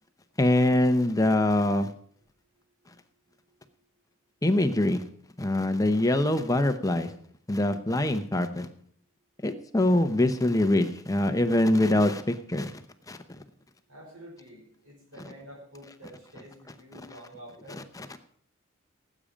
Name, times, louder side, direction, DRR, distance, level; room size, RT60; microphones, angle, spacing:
voice 1, 0.4-1.9 4.4-5.0 5.4-7.1 7.5-8.7 9.4-12.7 13.1-13.2 17.7-18.2, left 1 dB, 15° left, 8 dB, 0.7 m, -24 dB
voice 2, 13.9-17.8, equal, 85° right, -1 dB, 4.9 m, -48 dB
18.0 x 8.6 x 5.1 m, 0.62 s
head